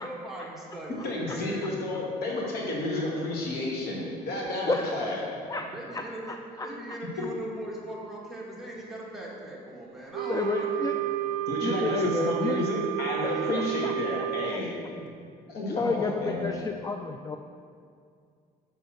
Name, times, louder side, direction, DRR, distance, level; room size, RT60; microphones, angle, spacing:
voice 1, 0.0-1.6 5.5-11.2 15.0-15.1, right 1 dB, ahead, -5 dB, 1.8 m, -40 dB
voice 2, 1.0-5.3 11.5-14.7 15.5-16.5, left 2 dB, 70° left, -3 dB, 2.1 m, -31 dB
voice 3, 5.9-6.7 10.3-10.9 11.6-12.6 13.2-13.9 15.7-17.4, left 4 dB, 20° left, 5 dB, 0.3 m, -31 dB
Wind instrument woodwind instrument, 10.1-14.6, right 13 dB, 60° right, 0.4 m, -31 dB
6.2 x 5.4 x 6.5 m, 2.3 s
cardioid pair, 110°, 17 cm